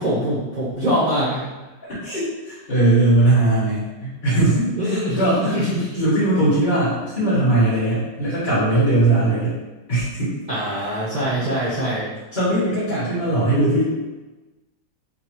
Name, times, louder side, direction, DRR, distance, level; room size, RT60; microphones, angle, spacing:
voice 1, 0.0-1.4 4.8-5.9 10.5-12.1, equal, 80° right, -10 dB, 0.4 m, -23 dB
voice 2, 1.8-9.6 9.9-10.3 12.3-13.9, right 2 dB, 30° left, -14 dB, 1.3 m, -20 dB
3.9 x 3.3 x 2.9 m, 1.1 s
omnidirectional pair, 2.2 m